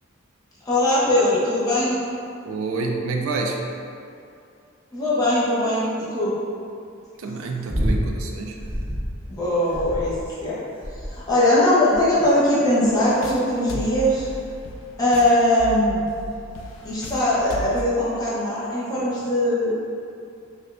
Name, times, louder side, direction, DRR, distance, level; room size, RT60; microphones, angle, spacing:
voice 1, 0.6-2.0 4.9-6.3 9.3-10.2 10.4-10.6 11.1-14.3 15.0-16.0 16.8-19.8, left 1 dB, 20° left, -9 dB, 0.7 m, -20 dB
voice 2, 2.4-3.6 7.2-8.6 13.7-13.8, right 3 dB, 75° right, 2 dB, 0.3 m, -28 dB
sound 1, 7.7-8.1 8.6-9.2 9.7-10.3 10.8-11.3 11.9-12.3 13.0-13.3 14.3-14.4, equal, 10° right, 0.4 m, -27 dB
sound 2, 12.8-17.8, equal, 65° left, 0.3 m, -36 dB
4.8 x 2.2 x 2.4 m, 2.5 s
head